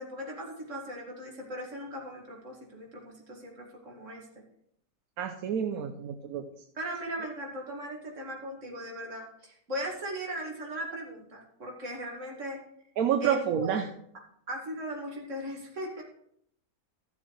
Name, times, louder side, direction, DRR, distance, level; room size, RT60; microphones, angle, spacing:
voice 1, 0.0-4.3 6.7-12.6 13.2-13.8 14.5-16.0, right 1 dB, 55° right, -1 dB, 2.4 m, -38 dB
voice 2, 5.2-6.5 13.0-13.9, right 8 dB, 75° right, 6 dB, 1.1 m, -29 dB
14.0 x 7.2 x 3.2 m, 0.70 s
omnidirectional pair, 1.6 m